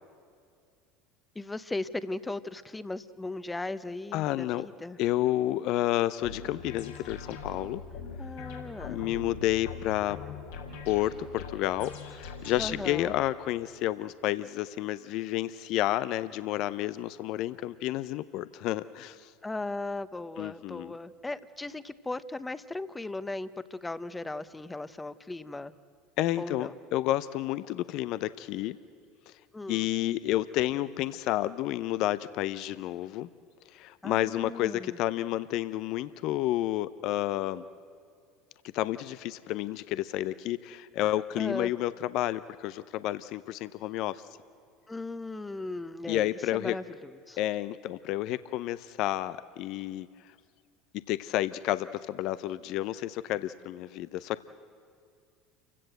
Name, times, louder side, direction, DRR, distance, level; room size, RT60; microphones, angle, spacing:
voice 1, 1.3-5.0 8.2-9.0 12.6-13.1 19.4-25.7 26.4-26.7 29.5-29.9 34.0-35.0 41.4-41.7 44.9-47.4, left 2 dB, 15° left, 14 dB, 0.9 m, -37 dB
voice 2, 4.1-4.7 5.0-7.8 8.8-10.2 10.8-19.3 20.4-20.9 26.2-28.8 29.3-29.4 29.7-33.3 33.7-37.6 38.7-44.2 46.1-46.8 47.4-50.1 51.1-54.5, left 14 dB, 60° left, 15 dB, 0.5 m, -30 dB
sound 1, 6.2-13.1, left 4 dB, 80° left, 3.9 m, -42 dB
28.5 x 16.0 x 7.9 m, 2.3 s
hypercardioid pair, 80°, 0 cm